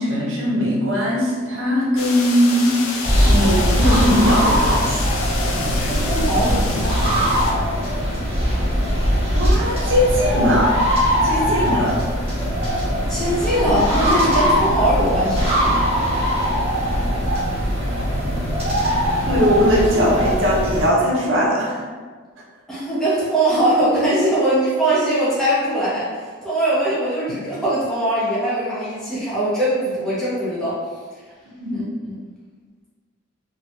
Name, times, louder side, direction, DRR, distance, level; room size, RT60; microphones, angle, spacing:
voice 1, 0.0-2.8 3.3-5.0 5.5-5.8 9.3-10.7 11.2-12.0 19.3-21.8 31.6-31.7, equal, 65° right, -4 dB, 0.7 m, -19 dB
sound 1, 2.0-7.5, left 4 dB, 90° left, 0.4 m, -29 dB
sound 2, 3.0-20.9, equal, 30° right, 1.0 m, -20 dB
voice 2, 5.8-7.0 13.1-15.6 22.7-30.8 31.7-32.2, right 1 dB, ahead, -11 dB, 0.7 m, -21 dB
2.8 x 2.2 x 2.8 m, 1.5 s
head